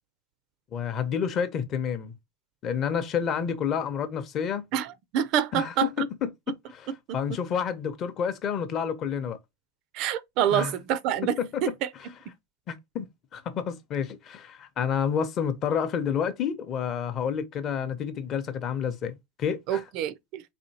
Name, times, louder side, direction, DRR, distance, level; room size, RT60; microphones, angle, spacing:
voice 1, 0.7-2.1 2.6-4.6 5.5-9.4 10.5-10.7 11.4-11.6 12.7-13.1 13.3-19.8, left 7 dB, 30° left, 0.6 m, -29 dB
voice 2, 4.7-6.1 7.3-7.4 9.9-11.9 19.7-20.4, right 10 dB, 45° right, 0.4 m, -27 dB
4.2 x 3.0 x 2.8 m
supercardioid pair, 155°, 0 cm